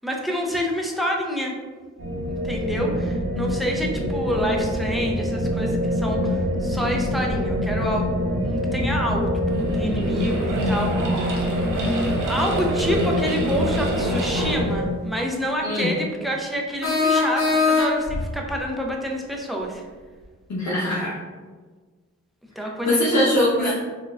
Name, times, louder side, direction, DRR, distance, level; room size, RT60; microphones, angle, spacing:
voice 1, 0.0-1.5 2.3-8.1 8.4-11.2 11.6-19.8 22.6-23.3 23.6-23.7, equal, ahead, -1 dB, 0.6 m, -28 dB
sound 1, 2.0-14.9, equal, 45° right, 0.7 m, -25 dB
sound 2, 9.4-14.6, right 2 dB, 90° right, 0.6 m, -30 dB
sound 3, 16.8-18.2, left 4 dB, 45° left, 1.1 m, -21 dB
voice 2, 20.5-21.2 22.9-23.7, left 1 dB, 65° left, -7 dB, 0.7 m, -21 dB
4.0 x 2.2 x 2.4 m, 1.4 s
cardioid pair, 55°, 30 cm